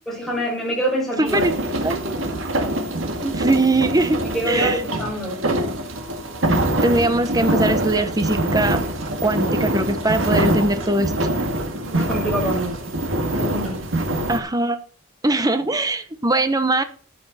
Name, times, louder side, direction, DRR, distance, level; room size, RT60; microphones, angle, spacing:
voice 1, 0.1-1.6 4.2-5.4 11.8-12.9 13.3-13.9, right 1 dB, ahead, -3 dB, 5.7 m, -26 dB
voice 2, 1.2-1.5 1.8-2.2 3.2-4.8 6.8-8.8 9.2-11.3 14.3-14.8 15.2-16.8, right 2 dB, 20° right, 10 dB, 0.8 m, -21 dB
sound 1, 1.2-14.4, right 1 dB, 75° right, 1.9 m, -24 dB
12.5 x 8.5 x 4.1 m, 0.43 s
head